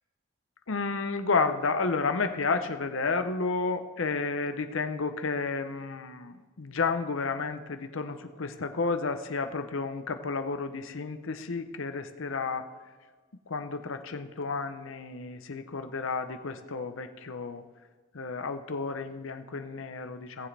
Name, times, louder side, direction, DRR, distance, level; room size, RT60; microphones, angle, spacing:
voice 1, 0.7-12.7 13.5-17.6 18.1-20.5, left 4 dB, 60° left, 8 dB, 0.7 m, -31 dB
18.0 x 7.3 x 3.4 m, 1.4 s
head